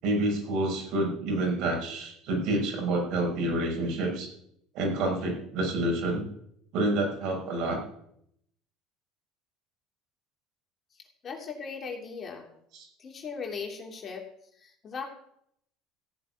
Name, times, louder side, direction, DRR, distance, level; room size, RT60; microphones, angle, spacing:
voice 1, 0.0-4.3 4.7-6.2 6.7-7.8 12.7-12.9, right 1 dB, 65° right, 1 dB, 6.4 m, -28 dB
voice 2, 11.2-12.5 13.0-14.2 14.6-15.0, left 5 dB, 40° left, 2 dB, 2.9 m, -38 dB
15.0 x 6.5 x 9.3 m, 0.71 s
supercardioid pair, 95°, 0 cm